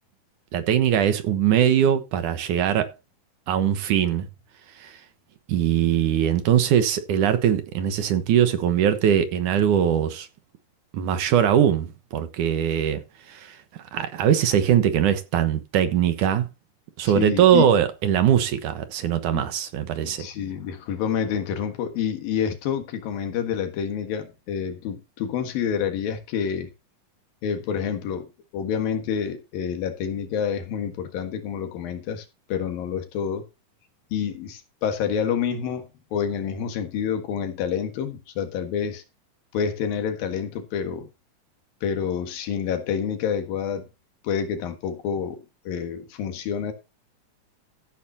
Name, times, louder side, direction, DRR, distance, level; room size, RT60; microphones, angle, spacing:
voice 1, 0.5-2.9 3.5-4.3 4.8-4.9 5.5-10.3 10.9-13.0 13.3-13.6 13.9-16.5 17.0-20.3, right 9 dB, 70° right, 2.6 m, -21 dB
voice 2, 17.0-17.7 19.3-19.5 20.0-26.7 27.4-28.3 28.5-33.4 34.1-39.0 39.5-41.1 41.8-43.9 44.2-46.7, left 7 dB, 85° left, 3.4 m, -28 dB
14.5 x 9.3 x 2.8 m
omnidirectional pair, 4.0 m